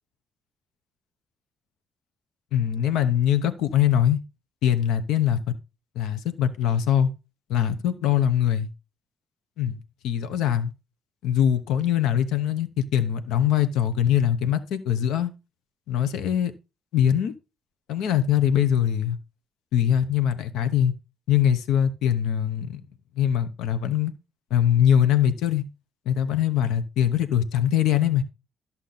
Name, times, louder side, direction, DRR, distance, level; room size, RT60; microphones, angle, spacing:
voice 1, 2.5-4.2 4.6-5.4 6.0-7.1 7.5-8.7 9.6-10.7 11.2-15.3 15.9-16.5 16.9-17.3 17.9-19.2 19.7-20.9 21.3-22.8 23.2-24.1 24.5-25.6 26.1-28.2, left 10 dB, 90° left, 0.9 m, -22 dB
11.5 x 7.3 x 4.0 m
cardioid pair, 90°, 0 cm